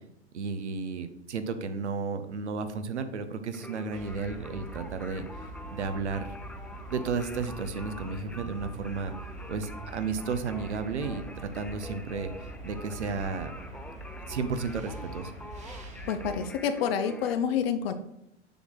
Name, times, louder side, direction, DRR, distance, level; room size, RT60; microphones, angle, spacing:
voice 1, 0.3-6.3 6.9-9.1 9.5-13.5 14.2-15.3, right 4 dB, 80° right, 10 dB, 0.9 m, -33 dB
Singing, 3.5-17.3, left 2 dB, 5° left, 0.4 m, -46 dB
sound 1, 3.9-16.4, right 2 dB, 20° right, 1.4 m, -43 dB
voice 2, 16.1-17.9, left 7 dB, 60° left, 9 dB, 0.8 m, -28 dB
6.9 x 6.1 x 3.9 m, 0.82 s
figure-of-eight pair, 90°, 34 cm